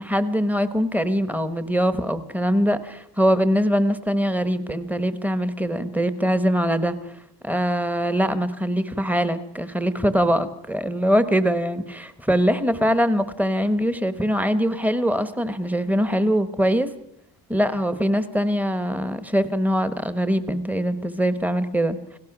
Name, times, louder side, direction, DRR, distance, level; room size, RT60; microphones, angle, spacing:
voice 1, 0.0-7.0 7.4-16.9 17.5-22.0, equal, 5° right, 12 dB, 1.0 m, -22 dB
29.5 x 17.0 x 5.9 m, 0.80 s
wide cardioid pair, 170°, 47 cm